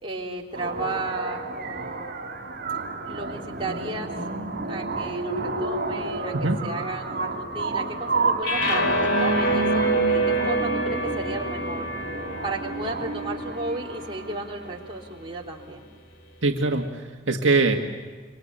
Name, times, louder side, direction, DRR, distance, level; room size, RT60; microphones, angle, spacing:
voice 1, 0.0-2.3 3.0-4.1 4.7-11.8 12.4-15.8, right 2 dB, 25° right, -2 dB, 3.4 m, -34 dB
sound 1, 0.5-14.5, right 2 dB, 55° right, 4.6 m, -30 dB
sound 2, 8.4-14.7, right 1 dB, 70° left, 3.4 m, -27 dB
voice 2, 16.4-17.8, right 3 dB, 70° right, 2 dB, 1.9 m, -22 dB
26.0 x 25.5 x 8.8 m, 1.5 s
head